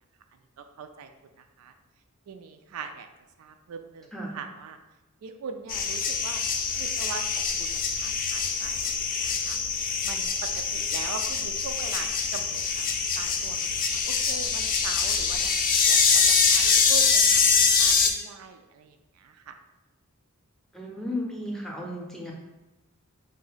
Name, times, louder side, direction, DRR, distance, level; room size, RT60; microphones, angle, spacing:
voice 1, 0.6-1.1 1.4-1.7 2.3-3.1 3.4-4.8 5.2-6.4 6.8-9.6 10.0-12.9 13.2-15.5 15.8-19.6, right 5 dB, 70° right, 7 dB, 0.3 m, -41 dB
sound 1, 5.7-18.1, left 5 dB, 40° left, 0.5 m, -24 dB
voice 2, 20.7-22.3, left 1 dB, ahead, -2 dB, 0.6 m, -34 dB
3.8 x 2.6 x 3.9 m, 1.1 s
head